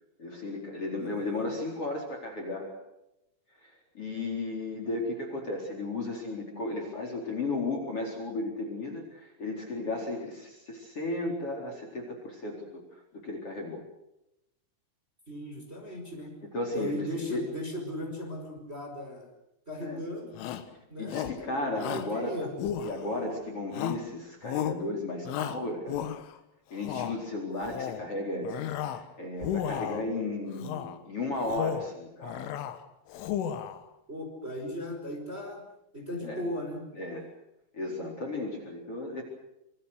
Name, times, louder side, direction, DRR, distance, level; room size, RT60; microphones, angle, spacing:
voice 1, 0.2-2.7 3.6-12.6 13.1-13.8 16.5-17.4 19.8-20.0 21.0-22.5 22.8-26.0 26.7-32.4 36.2-36.4 36.9-37.3 37.7-39.2, left 2 dB, 30° left, 2 dB, 4.7 m, -34 dB
voice 2, 1.0-1.5 15.3-16.3 16.7-19.3 19.7-20.3 20.9-22.5 34.1-35.6 35.9-36.8, equal, 15° right, 2 dB, 4.8 m, -37 dB
Shout, 20.3-20.7 21.1-21.4 21.8-22.1 22.6-23.3 23.7-24.1 24.4-24.8 25.3-26.4 26.8-27.2 27.6-28.1 28.4-29.1 29.4-30.1 30.6-31.0 31.4-31.9 32.2-32.8 33.1-33.8, left 10 dB, 85° left, 4.0 m, -34 dB
27.0 x 24.5 x 6.5 m, 0.86 s
omnidirectional pair, 5.5 m